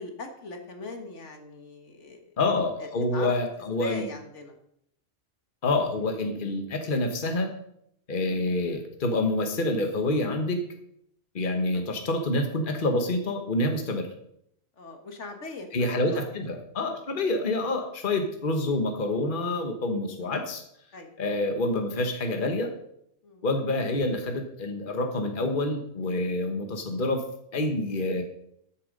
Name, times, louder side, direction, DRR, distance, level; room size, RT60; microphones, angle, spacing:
voice 1, 0.0-2.2 2.8-3.4 3.8-4.6 11.7-11.8 14.8-15.7 16.0-16.3 20.9-21.2 23.2-23.4, left 3 dB, 70° left, 5 dB, 1.8 m, -40 dB
voice 2, 2.4-4.1 5.6-7.5 8.1-10.6 11.3-14.1 15.7-20.6 21.2-22.7 23.4-27.2 27.5-28.2, left 2 dB, 45° left, 5 dB, 1.5 m, -27 dB
13.5 x 7.4 x 5.3 m, 0.73 s
omnidirectional pair, 1.3 m